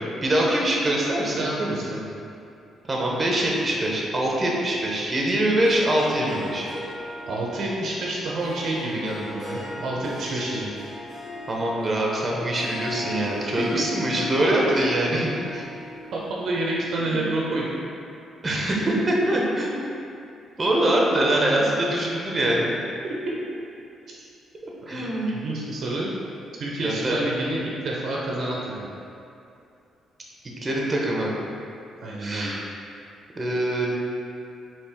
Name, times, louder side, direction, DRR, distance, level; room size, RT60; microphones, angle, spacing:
voice 1, 0.2-1.4 2.9-6.7 11.5-15.3 15.5-15.6 17.0-17.3 18.4-19.9 20.6-22.7 24.9-25.3 26.8-27.2 30.4-31.3 32.2-32.6 33.4-33.9, right 1 dB, 30° right, -3 dB, 0.8 m, -23 dB
voice 2, 1.3-2.1 7.3-10.7 13.4-13.8 16.1-17.8 23.0-23.4 24.1-24.2 24.9-26.1 26.6-28.9 32.0-32.6, right 2 dB, 65° right, -4 dB, 0.6 m, -29 dB
Harp, 5.6-16.8, left 1 dB, 35° left, 1.5 m, -38 dB
4.4 x 3.0 x 3.5 m, 2.6 s
cardioid pair, 90°, 0 cm